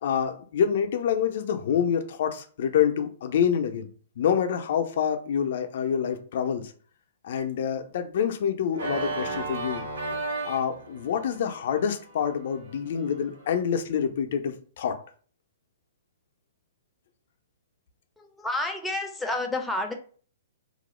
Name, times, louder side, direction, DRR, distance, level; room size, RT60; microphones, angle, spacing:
voice 1, 0.0-3.9 4.2-6.7 7.2-9.8 10.5-15.0, left 8 dB, 60° left, 6 dB, 0.4 m, -27 dB
Organ, 8.7-13.6, right 3 dB, 75° right, 1.0 m, -35 dB
voice 2, 18.2-19.9, left 2 dB, 5° left, 2 dB, 0.5 m, -30 dB
2.4 x 2.0 x 3.0 m, 0.43 s
hypercardioid pair, 125°, 0 cm